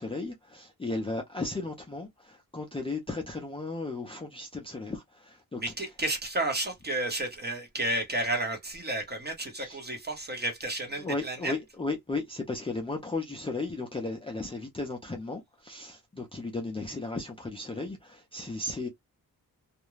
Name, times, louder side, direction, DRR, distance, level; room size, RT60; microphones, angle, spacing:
voice 1, 0.0-5.6 9.6-9.8 11.0-18.9, left 3 dB, 15° left, 0.4 m, -35 dB
voice 2, 5.6-11.5, right 1 dB, 25° right, 0.9 m, -32 dB
2.4 x 2.1 x 3.0 m
wide cardioid pair, 160°, 37 cm